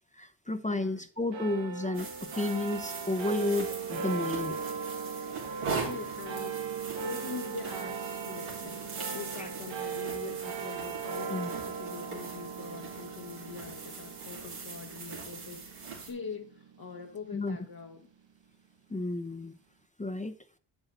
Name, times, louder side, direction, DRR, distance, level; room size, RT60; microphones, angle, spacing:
voice 1, 0.1-4.6 9.4-9.5 11.3-11.5 17.3-17.6 18.9-19.5 20.0-20.4, left 2 dB, 15° left, 0.7 m, -32 dB
voice 2, 0.7-1.1 5.8-18.1, left 5 dB, 45° left, 1.1 m, -44 dB
sound 1, 1.3-18.0, right 6 dB, 65° right, 1.1 m, -39 dB
sound 2, 1.9-16.1, right 4 dB, 90° right, 2.8 m, -41 dB
8.1 x 7.9 x 4.0 m
cardioid pair, 50°, 49 cm